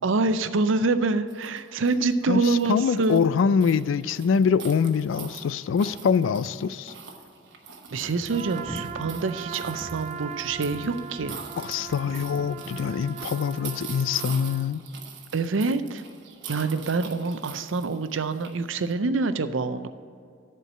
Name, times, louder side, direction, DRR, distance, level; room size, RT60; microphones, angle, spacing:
voice 1, 0.0-3.3 7.9-11.4 15.3-16.0 16.4-19.9, right 3 dB, 85° right, 11 dB, 0.6 m, -26 dB
sound 1, 1.3-18.9, right 6 dB, 65° right, 1.1 m, -44 dB
voice 2, 2.7-6.9 11.6-14.8, left 6 dB, 80° left, 17 dB, 0.3 m, -24 dB
sound 2, 7.2-7.3 7.7-13.7, left 1 dB, 10° left, 1.1 m, -44 dB
Trumpet, 8.3-14.7, right 7 dB, 35° right, 0.3 m, -40 dB
11.0 x 4.6 x 7.2 m, 2.3 s
head